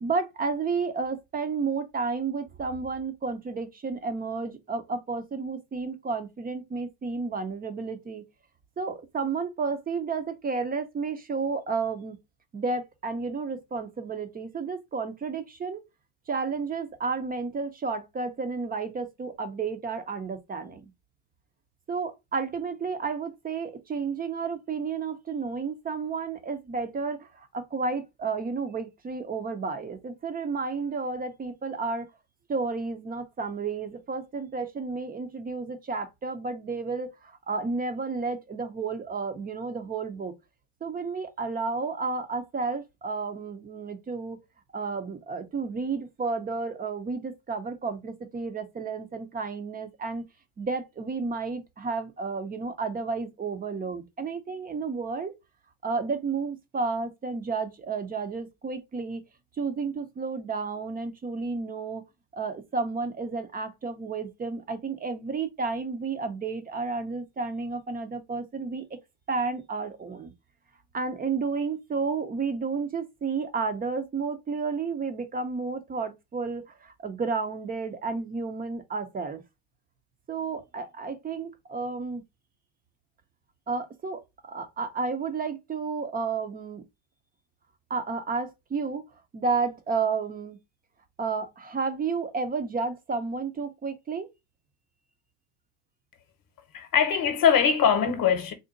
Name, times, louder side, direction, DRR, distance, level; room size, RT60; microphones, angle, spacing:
voice 1, 0.0-8.2 8.8-12.2 12.5-15.8 16.3-20.9 21.9-32.1 32.5-40.3 40.8-44.4 44.7-50.2 50.6-55.3 55.8-59.2 59.6-62.0 62.3-69.0 69.3-70.3 70.9-79.4 80.3-82.2 83.7-86.8 87.9-89.1 89.3-90.6 91.2-94.3, right 4 dB, 20° right, 0.3 m, -31 dB
voice 2, 96.7-98.5, left 7 dB, 45° left, 0.8 m, -22 dB
3.8 x 2.1 x 3.6 m
cardioid pair, 125°, 49 cm